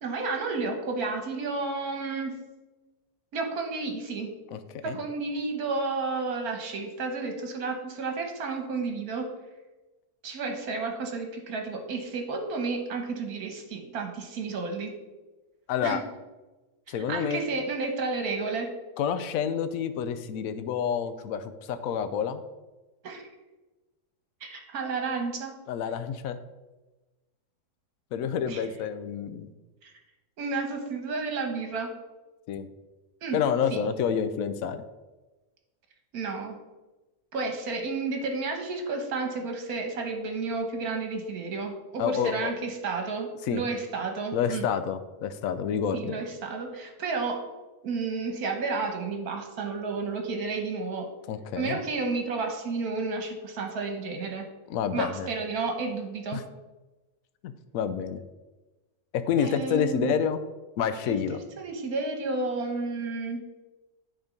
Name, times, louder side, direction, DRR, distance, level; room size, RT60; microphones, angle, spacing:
voice 1, 0.0-2.4 3.3-4.3 4.8-9.3 10.2-14.9 15.8-16.0 16.9-18.7 23.0-23.2 24.4-25.5 28.5-28.6 29.8-29.9 30.4-31.9 33.2-33.4 33.7-33.8 36.1-36.6 37.3-44.7 45.9-47.4 47.8-51.1 51.6-54.4 54.9-56.4 59.4-60.2 61.0-61.2 61.6-63.4, right 4 dB, 70° right, 3 dB, 1.6 m, -31 dB
voice 2, 15.7-16.0 16.9-17.4 19.0-22.4 25.7-26.4 28.1-29.5 32.5-32.7 33.3-34.8 42.0-42.5 43.4-43.6 44.3-46.2 51.3-51.8 54.7-55.3 56.3-56.4 57.4-58.2 59.1-60.4 60.8-61.4, left 7 dB, 70° left, 10 dB, 1.0 m, -28 dB
9.5 x 3.7 x 5.1 m, 1.1 s
omnidirectional pair, 1.7 m